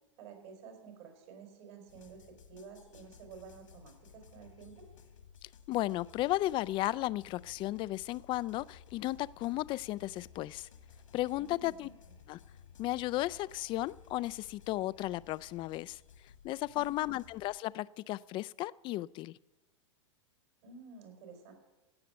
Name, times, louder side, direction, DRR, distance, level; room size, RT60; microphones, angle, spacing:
voice 1, 0.2-4.9 11.4-11.9 16.7-17.2 20.6-21.5, right 5 dB, 60° right, 3 dB, 4.4 m, -51 dB
Metal Head, 1.9-17.6, left 7 dB, 85° left, 1.9 m, -57 dB
voice 2, 5.4-10.7 11.1-11.9 12.3-12.4 12.8-16.0 16.4-19.4, left 16 dB, 30° left, 19 dB, 0.3 m, -34 dB
16.5 x 6.6 x 8.2 m, 1.1 s
hypercardioid pair, 110°, 16 cm